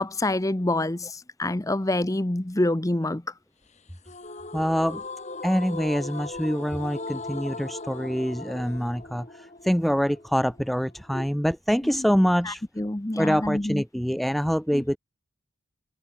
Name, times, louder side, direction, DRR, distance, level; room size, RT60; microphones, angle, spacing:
voice 1, 0.0-3.2 11.1-11.3 11.8-12.0 12.4-13.8 14.7-14.8, left 1 dB, 15° left, 0.8 m, -27 dB
sound 1, 4.1-11.1, left 3 dB, 35° left, 3.5 m, -39 dB
voice 2, 4.5-5.0 5.4-12.6 13.2-15.0, equal, ahead, 0.4 m, -25 dB
head